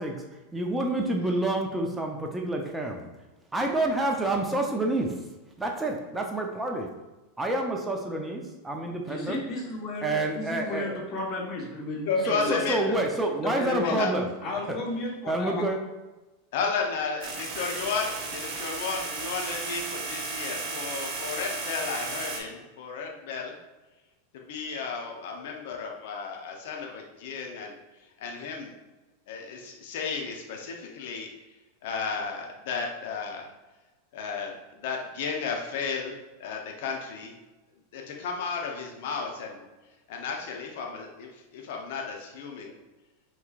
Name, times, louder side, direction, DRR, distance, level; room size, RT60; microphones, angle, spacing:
voice 1, 0.0-3.1 3.5-5.2 5.6-6.9 7.4-9.4 10.0-11.0 12.3-14.3 15.3-15.8, right 2 dB, 10° right, 1 dB, 0.6 m, -28 dB
voice 2, 9.1-12.9 13.4-14.0 14.4-15.6, left 2 dB, 40° left, -2 dB, 1.3 m, -33 dB
voice 3, 12.1-12.8 13.8-14.1 16.5-23.5 24.3-27.7 28.2-28.7 29.3-31.3 31.8-33.5 34.1-37.3 37.9-39.6 40.1-42.7, left 5 dB, 65° left, 1 dB, 0.8 m, -33 dB
sound 1, 17.2-22.4, right 3 dB, 45° right, 1.0 m, -34 dB
5.6 x 3.1 x 2.4 m, 1.1 s
hypercardioid pair, 95°, 0 cm